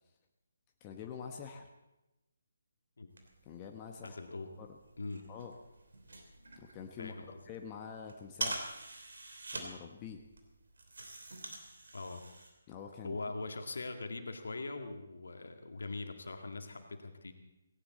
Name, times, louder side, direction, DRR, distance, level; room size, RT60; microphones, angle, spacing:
voice 1, 0.8-1.7 3.5-4.2 4.6-4.7 5.3-5.5 6.6-7.1 7.4-8.8 9.5-10.2 12.7-13.2, left 7 dB, 20° left, 3 dB, 1.1 m, -46 dB
sound 1, 3.1-12.5, right 2 dB, 65° right, 3.3 m, -46 dB
voice 2, 4.0-4.5 5.0-5.3 7.0-7.4 11.9-12.2 13.0-17.3, left 3 dB, 65° left, 5 dB, 2.0 m, -42 dB
18.0 x 17.5 x 4.2 m, 0.99 s
figure-of-eight pair, 145°, 0 cm